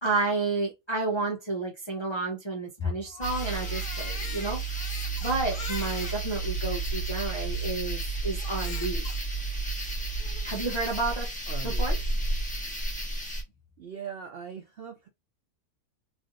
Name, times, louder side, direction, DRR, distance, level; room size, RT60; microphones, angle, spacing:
voice 1, 0.0-4.6 5.2-9.1 10.4-11.3 11.6-12.0, right 3 dB, 35° left, 0.4 m, -31 dB
Crying sobbing, 3.1-6.2 6.9-7.0 8.4-9.2, left 5 dB, 60° left, 1.2 m, -42 dB
sound 1, 3.2-13.4, right 3 dB, 5° left, 0.9 m, -31 dB
voice 2, 11.5-11.8 13.8-15.1, right 8 dB, 75° right, 0.5 m, -40 dB
3.3 x 2.5 x 2.5 m
omnidirectional pair, 1.6 m